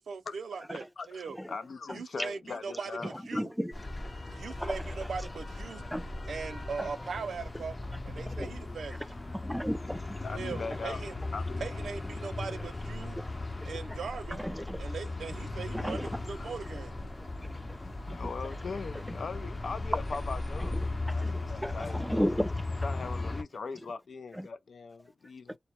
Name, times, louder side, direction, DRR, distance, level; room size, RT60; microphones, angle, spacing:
voice 1, 0.0-1.4 1.9-3.5 4.3-5.8 6.3-7.8 8.0-9.0 10.3-11.2 11.6-13.2 13.6-14.4 14.8-17.0, right 5 dB, 85° right, 0.3 m, -40 dB
voice 2, 1.0-3.1 10.2-11.0 11.3-11.6 16.3-16.5 18.1-22.0 22.8-25.6, left 4 dB, 75° left, 0.4 m, -40 dB
voice 3, 1.9-2.3 3.0-3.7 4.6-5.1 5.9-6.0 6.8-6.9 8.4-8.5 9.3-10.2 13.2-13.3 13.6-13.8 14.3-14.8 15.7-16.2 17.2-17.3 17.8-18.3 19.1-19.2 20.6-20.9 21.2-22.7 24.3-24.5, equal, ahead, 0.3 m, -35 dB
sound 1, 3.7-23.4, left 2 dB, 35° left, 0.7 m, -37 dB
2.1 x 2.0 x 2.8 m
cardioid pair, 60°, 0 cm